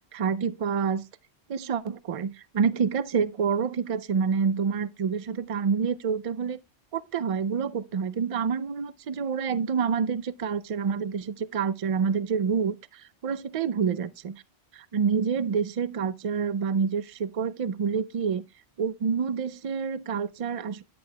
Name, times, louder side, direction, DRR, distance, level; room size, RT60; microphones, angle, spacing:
voice 1, 0.1-1.0 1.5-6.6 6.9-14.3 14.7-18.4 18.8-20.8, right 6 dB, 60° right, 0.3 m, -27 dB
10.5 x 7.8 x 2.2 m
omnidirectional pair, 1.2 m